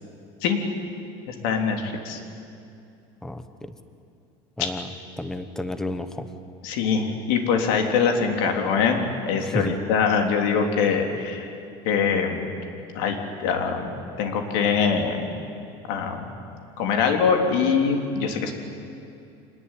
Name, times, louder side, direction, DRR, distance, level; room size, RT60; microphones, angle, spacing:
voice 1, 1.3-2.2 4.6-4.7 6.6-11.5 11.9-12.5 12.9-15.3 15.9-16.3 16.8-18.5, left 6 dB, 70° left, 3 dB, 3.4 m, -23 dB
voice 2, 3.2-3.7 4.6-4.9 5.2-6.3 9.4-9.7, left 2 dB, 5° left, 10 dB, 1.0 m, -31 dB
25.5 x 19.5 x 9.9 m, 2.5 s
cardioid pair, 175°, 12 cm